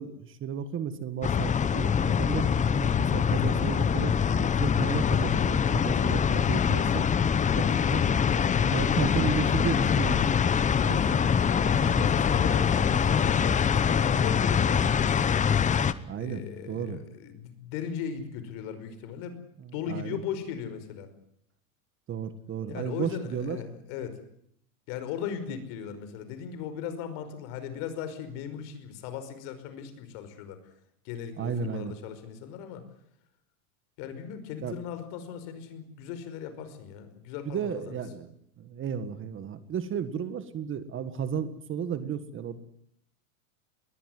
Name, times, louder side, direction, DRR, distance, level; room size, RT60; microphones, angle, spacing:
voice 1, 0.0-7.1 7.5-8.1 8.7-10.3 10.8-11.0 11.9-12.0 12.4-12.5 16.1-16.4 16.7-17.0 19.6-20.2 22.1-23.6 25.5-25.6 31.4-31.9 34.6-34.8 37.4-42.6, right 7 dB, 30° right, 12 dB, 1.7 m, -34 dB
sound 1, 1.2-15.9, left 7 dB, 15° left, 1.0 m, -24 dB
voice 2, 10.7-15.2 16.1-19.4 19.7-21.1 22.7-24.2 24.9-30.6 31.0-32.8 34.0-38.0, left 8 dB, 60° left, 11 dB, 5.3 m, -38 dB
21.0 x 18.5 x 9.6 m, 0.72 s
supercardioid pair, 135°, 43 cm